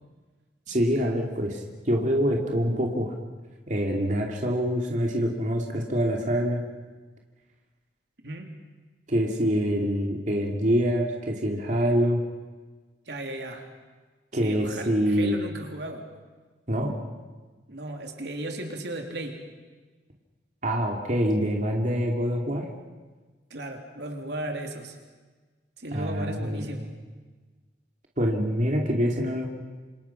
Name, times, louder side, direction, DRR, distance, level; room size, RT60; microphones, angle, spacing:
voice 1, 0.7-1.6 1.8-3.1 3.7-6.6 9.1-12.2 14.3-15.4 16.7-16.9 20.6-22.7 25.9-26.8 28.2-29.5, equal, 45° right, 0 dB, 2.8 m, -25 dB
voice 2, 13.1-13.6 14.3-16.1 17.7-19.4 23.5-25.0 25.8-26.9, right 1 dB, 75° right, 3 dB, 3.3 m, -35 dB
27.5 x 27.5 x 5.9 m, 1.4 s
head